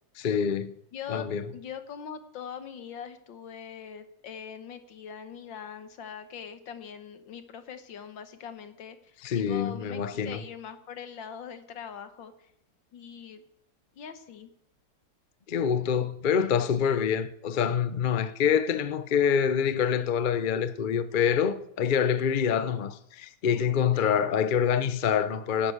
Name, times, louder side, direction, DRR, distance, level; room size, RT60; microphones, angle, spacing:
voice 1, 0.2-0.7 1.1-1.5 9.2-10.4 15.5-25.7, left 7 dB, 60° left, 0.5 m, -26 dB
voice 2, 0.9-1.2 1.5-12.5 12.9-13.4 13.9-14.5 23.9-24.2, left 8 dB, 80° left, 1.9 m, -42 dB
11.0 x 11.0 x 8.7 m
omnidirectional pair, 2.0 m